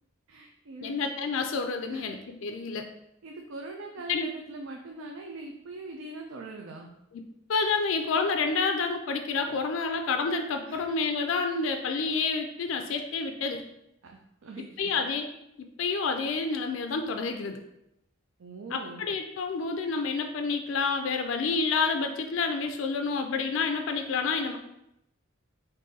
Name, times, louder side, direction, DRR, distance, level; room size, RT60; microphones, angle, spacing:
voice 1, 0.3-1.0 1.9-2.2 3.2-6.9 9.5-9.6 10.6-10.9 14.0-14.9 18.4-19.0, right 2 dB, 70° right, 1 dB, 0.4 m, -42 dB
voice 2, 0.8-2.9 4.1-4.3 7.5-13.6 14.8-15.3 15.6-17.6 18.7-24.6, left 4 dB, 65° left, 5 dB, 0.4 m, -29 dB
3.8 x 2.6 x 3.9 m, 0.83 s
head